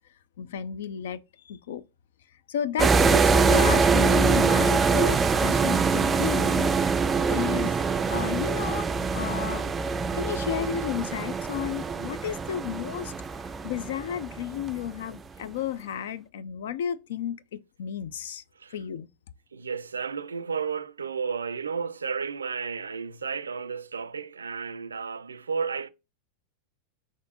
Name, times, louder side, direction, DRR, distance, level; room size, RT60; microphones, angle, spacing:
voice 1, 0.4-1.8 2.5-6.7 7.3-7.7 8.1-8.9 9.1-9.6 10.1-13.1 13.6-18.4 18.7-19.1, left 9 dB, 70° left, 0.4 m, -32 dB
sound 1, 2.8-14.9, right 4 dB, 20° right, 0.4 m, -24 dB
voice 2, 19.5-25.9, right 6 dB, 85° right, 0.4 m, -32 dB
4.1 x 3.0 x 3.9 m
hypercardioid pair, 95°, 0 cm